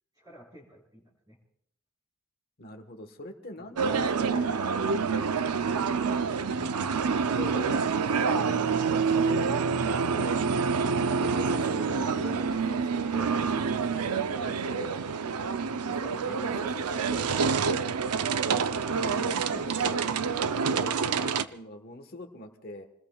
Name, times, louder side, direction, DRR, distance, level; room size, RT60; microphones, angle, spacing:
voice 1, 0.1-1.4 3.6-3.7 15.4-15.7 18.4-18.8, equal, 20° right, -6 dB, 4.4 m, -52 dB
voice 2, 2.6-4.6 7.1-10.4 10.8-13.3 13.9-15.0 15.8-17.9 19.0-22.9, left 1 dB, 45° left, 4 dB, 1.3 m, -43 dB
sound 1, 3.8-21.4, right 5 dB, 90° right, 0.6 m, -27 dB
28.5 x 20.5 x 2.4 m, 0.72 s
head